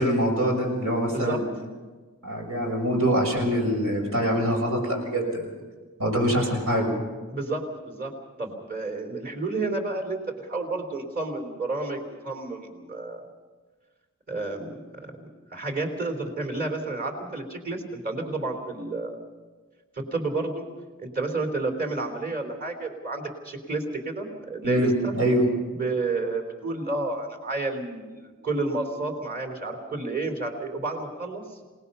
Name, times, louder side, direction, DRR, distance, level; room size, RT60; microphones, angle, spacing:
voice 1, 0.0-1.4 2.2-5.5 6.0-6.9 24.6-25.5, equal, 90° right, 1 dB, 6.6 m, -24 dB
voice 2, 1.1-1.4 7.3-8.1 8.4-13.3 14.3-14.8 15.0-15.1 15.5-19.2 20.0-20.7 21.0-25.1 25.7-31.4, right 3 dB, 45° right, 4 dB, 3.5 m, -30 dB
27.5 x 19.0 x 5.6 m, 1.3 s
head